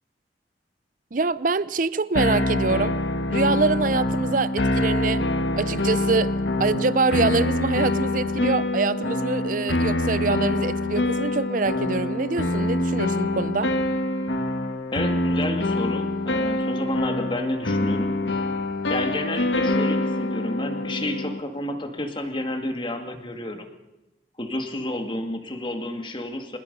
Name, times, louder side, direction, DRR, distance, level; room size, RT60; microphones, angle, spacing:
voice 1, 1.1-2.9 3.3-5.2 5.5-6.3 6.6-13.7, right 4 dB, 45° right, 17 dB, 0.6 m, -25 dB
sound 1, 2.2-21.4, left 2 dB, 80° left, 1.6 m, -25 dB
voice 2, 14.9-18.1 18.9-23.7 24.4-26.6, left 1 dB, 25° left, 5 dB, 2.2 m, -30 dB
25.0 x 21.0 x 5.5 m, 0.96 s
head